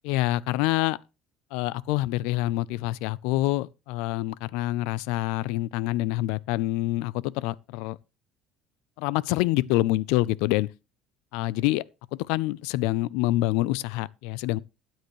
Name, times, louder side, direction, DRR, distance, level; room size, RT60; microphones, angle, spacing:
voice 1, 0.1-1.0 1.5-8.0 9.0-10.7 11.3-11.8 12.3-14.6, left 17 dB, 85° left, 0.5 m, -26 dB
13.0 x 9.3 x 3.2 m
cardioid pair, 180°, 0 cm